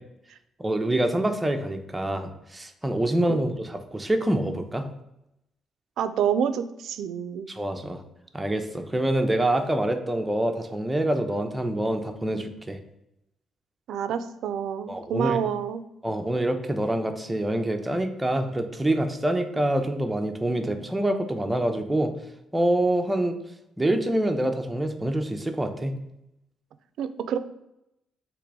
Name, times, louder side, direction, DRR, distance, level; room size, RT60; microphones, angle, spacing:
voice 1, 0.6-4.9 7.5-8.0 8.3-12.8 14.9-15.4 16.0-22.1 22.5-23.4 23.8-25.9, right 1 dB, 10° right, 6 dB, 0.6 m, -26 dB
voice 2, 6.0-7.5 13.9-15.8 27.0-27.4, right 8 dB, 75° right, 11 dB, 0.3 m, -28 dB
3.8 x 3.0 x 4.7 m, 0.84 s
cardioid pair, 90°, 0 cm